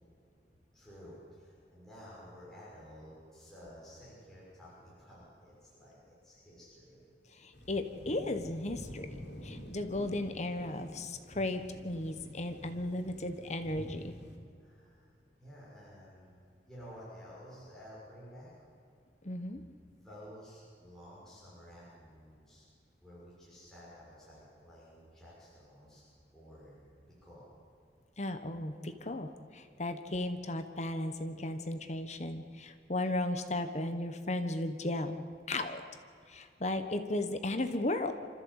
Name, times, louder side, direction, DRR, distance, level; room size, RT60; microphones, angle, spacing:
voice 1, 0.7-7.0 14.6-16.4 16.7-18.5 19.8-22.6 23.0-26.0 26.3-27.5, equal, ahead, -9 dB, 6.4 m, -53 dB
voice 2, 7.3-14.1 19.2-19.6 28.2-35.2 35.5-35.8 36.3-38.1, left 1 dB, 40° left, 8 dB, 1.4 m, -35 dB
sound 1, 7.5-14.4, equal, 70° left, 3.8 m, -49 dB
27.0 x 14.0 x 8.3 m, 2.4 s
head